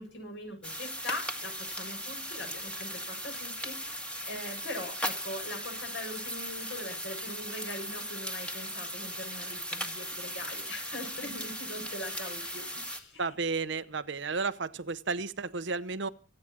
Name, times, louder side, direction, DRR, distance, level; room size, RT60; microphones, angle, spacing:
voice 1, 0.0-13.2, left 1 dB, 65° left, 2 dB, 7.8 m, -42 dB
sound 1, 0.6-13.0, equal, 5° left, 1.6 m, -38 dB
voice 2, 13.2-16.1, right 4 dB, 65° right, 13 dB, 0.9 m, -32 dB
24.5 x 9.0 x 6.2 m, 0.39 s
head